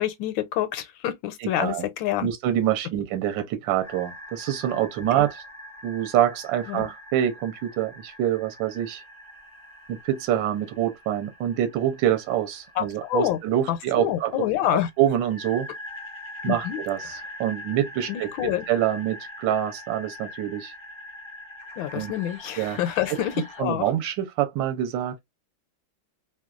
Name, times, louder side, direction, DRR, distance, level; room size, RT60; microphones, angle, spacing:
voice 1, 0.0-2.3 5.2-5.3 6.7-6.9 12.8-13.4 13.7-14.9 16.4-16.8 18.1-18.7 21.8-23.8, left 12 dB, 80° left, 1.3 m, -27 dB
voice 2, 1.4-1.8 2.2-5.4 5.8-9.0 9.9-14.4 15.0-15.7 16.4-20.7 21.9-22.1 22.6-22.8 23.6-25.2, right 11 dB, 75° right, 1.3 m, -26 dB
sound 1, 3.8-23.6, left 1 dB, 30° left, 0.5 m, -43 dB
3.2 x 2.3 x 2.3 m
omnidirectional pair, 2.1 m